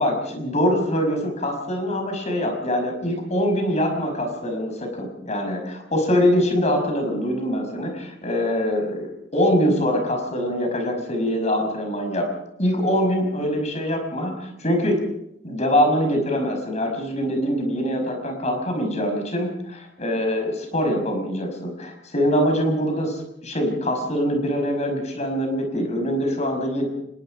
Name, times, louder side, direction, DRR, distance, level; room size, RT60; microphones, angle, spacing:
voice 1, 0.0-12.3 12.6-15.1 15.4-26.9, equal, 35° left, 4 dB, 5.5 m, -23 dB
25.5 x 21.5 x 5.1 m, 0.79 s
head